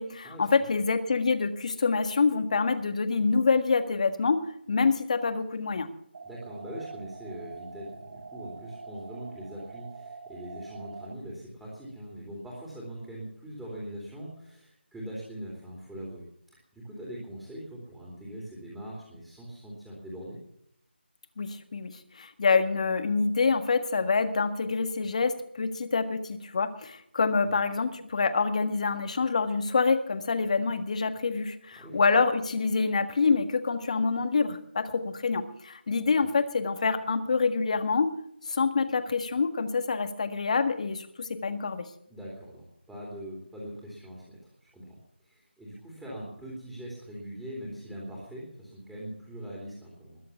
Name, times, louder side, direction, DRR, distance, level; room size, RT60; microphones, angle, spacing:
voice 1, 0.0-5.9 21.4-38.2 38.4-41.9, left 4 dB, 40° left, 10 dB, 1.6 m, -26 dB
sound 1, 6.1-11.1, right 4 dB, 35° right, 1.9 m, -45 dB
voice 2, 6.2-20.4 27.4-27.6 31.8-32.0 42.1-45.0 45.2-50.2, equal, 5° right, -5 dB, 3.1 m, -42 dB
21.0 x 7.7 x 7.1 m, 0.72 s
figure-of-eight pair, 165°, 6 cm